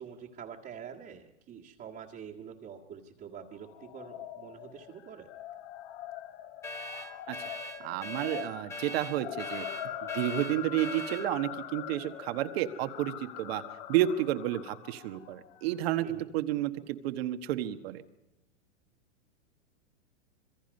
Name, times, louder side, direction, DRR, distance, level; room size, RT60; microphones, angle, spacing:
voice 1, 0.0-5.3 16.0-16.3, right 7 dB, 25° right, -4 dB, 1.8 m, -46 dB
sound 1, 3.6-16.1, left 11 dB, 55° left, 1.9 m, -43 dB
sound 2, 6.6-11.3, left 1 dB, 10° left, 2.0 m, -41 dB
voice 2, 7.8-9.7 10.0-13.6 13.9-18.0, right 13 dB, 55° right, 9 dB, 1.5 m, -31 dB
26.5 x 22.0 x 5.4 m, 0.92 s
hypercardioid pair, 130°, 36 cm